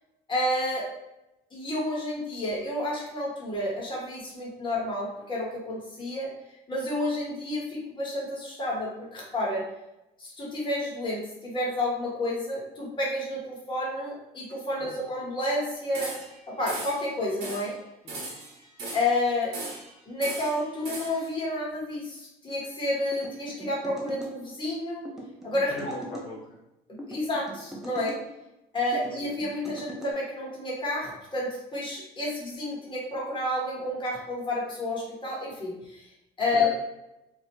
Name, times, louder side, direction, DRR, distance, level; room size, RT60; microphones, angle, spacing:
voice 1, 0.3-0.9 1.5-6.3 6.7-9.6 10.2-16.1 16.5-17.8 18.9-19.5 20.1-25.0 25.4-25.7 26.9-28.2 28.7-36.1 36.4-36.7, left 1 dB, 30° left, -4 dB, 1.0 m, -30 dB
sound 1, 15.9-16.4 16.7-17.1 17.4-17.7 18.1-19.2 19.5-19.9 20.2-21.3, right 2 dB, 80° right, 0.9 m, -37 dB
sound 2, 23.1-24.4 25.1-26.3 27.0-28.2 28.9-30.1, equal, ahead, 0.5 m, -41 dB
voice 2, 25.7-26.6 29.0-29.3 36.5-36.7, left 2 dB, 50° left, -6 dB, 0.6 m, -41 dB
2.4 x 2.0 x 2.9 m, 0.91 s
cardioid pair, 110°, 17 cm